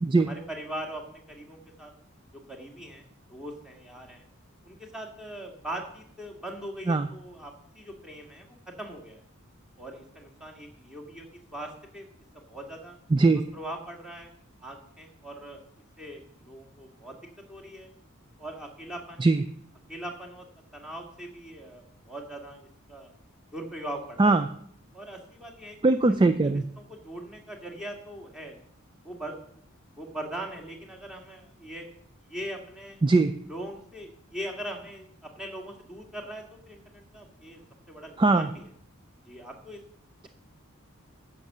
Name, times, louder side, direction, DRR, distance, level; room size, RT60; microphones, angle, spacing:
voice 1, 0.2-1.9 2.5-3.0 3.3-4.2 4.6-9.2 9.8-11.3 11.5-12.1 12.3-13.0 13.5-14.3 14.6-15.6 16.0-17.2 17.5-17.9 18.4-19.3 19.9-20.5 20.7-23.1 23.5-24.4 24.9-26.5 26.8-28.6 29.0-29.6 30.0-31.9 32.2-33.0 33.4-37.6 37.9-38.7 39.3-39.8, right 1 dB, 5° right, 2 dB, 1.8 m, -41 dB
voice 2, 13.1-13.4 19.2-19.4 24.2-24.5 25.8-26.6 33.0-33.3 38.2-38.5, right 3 dB, 20° right, 10 dB, 0.4 m, -20 dB
10.5 x 7.3 x 6.6 m, 0.66 s
head